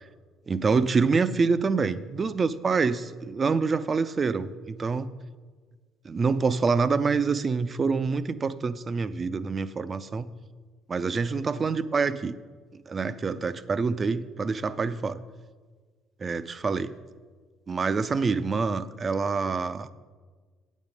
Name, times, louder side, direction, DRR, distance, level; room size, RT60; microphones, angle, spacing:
voice 1, 0.5-5.1 6.0-10.3 10.9-12.3 12.9-15.2 16.2-16.9 17.7-19.9, right 4 dB, 35° right, 15 dB, 0.5 m, -26 dB
9.3 x 7.3 x 5.3 m, 1.5 s
hypercardioid pair, 55°, 0 cm